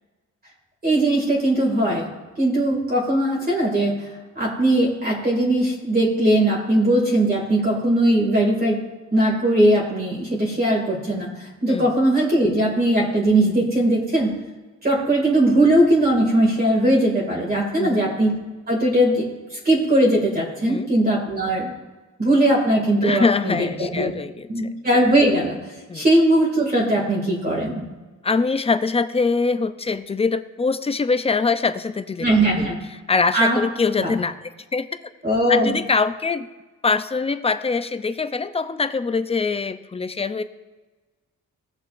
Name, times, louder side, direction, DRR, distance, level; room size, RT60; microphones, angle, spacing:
voice 1, 0.8-2.1 2.4-4.0 4.3-8.8 9.1-11.3 11.6-14.3 14.8-18.3 18.7-19.3 19.6-21.7 22.2-24.1 24.5-25.6 25.9-27.8 32.2-32.8 33.3-33.6 34.0-34.1 35.2-35.7, right 1 dB, 30° right, -3 dB, 2.4 m, -19 dB
voice 2, 23.0-24.5 25.9-26.1 28.2-32.3 32.6-34.9 35.5-36.5 36.8-40.4, left 4 dB, 20° left, 11 dB, 0.5 m, -23 dB
17.5 x 6.5 x 2.6 m, 1.2 s
cardioid pair, 100°, 31 cm